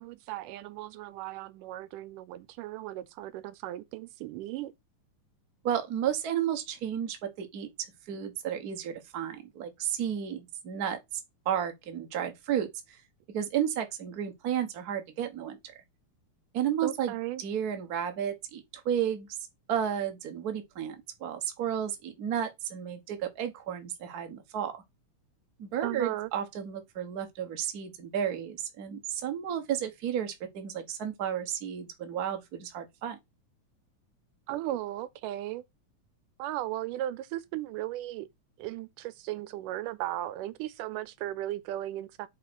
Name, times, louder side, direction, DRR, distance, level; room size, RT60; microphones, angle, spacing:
voice 1, 0.0-4.7 16.8-17.4 25.8-26.3 34.5-35.6 36.4-38.3 38.6-42.3, right 14 dB, 90° right, 2.3 m, -36 dB
voice 2, 5.6-7.7 8.1-11.0 11.4-13.0 13.3-15.6 16.5-17.1 17.4-19.3 19.7-24.8 25.6-33.2, right 9 dB, 50° right, 1.1 m, -32 dB
5.1 x 4.8 x 6.0 m
omnidirectional pair, 3.6 m